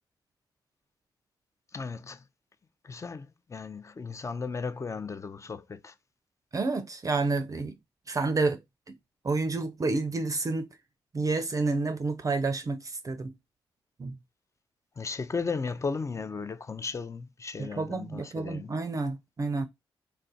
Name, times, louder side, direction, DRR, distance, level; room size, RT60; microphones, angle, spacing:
voice 1, 1.7-2.2 2.8-5.9 15.0-18.7, left 4 dB, 35° left, 0.5 m, -35 dB
voice 2, 6.5-7.7 8.1-8.6 8.9-9.0 9.2-10.7 11.1-13.3 14.0-14.2 17.6-19.7, right 3 dB, 35° right, 0.5 m, -29 dB
2.4 x 2.1 x 3.9 m
cardioid pair, 60°, 9 cm